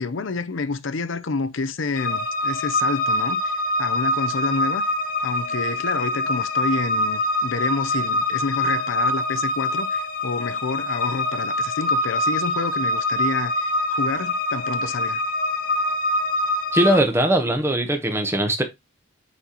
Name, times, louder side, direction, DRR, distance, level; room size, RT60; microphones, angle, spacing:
voice 1, 0.0-4.8 5.2-15.2, left 4 dB, 70° left, 0.6 m, -28 dB
sound 1, 1.9-17.0, left 1 dB, 45° left, 0.8 m, -24 dB
voice 2, 16.7-18.6, right 1 dB, 10° right, 0.9 m, -20 dB
8.4 x 4.2 x 2.9 m
head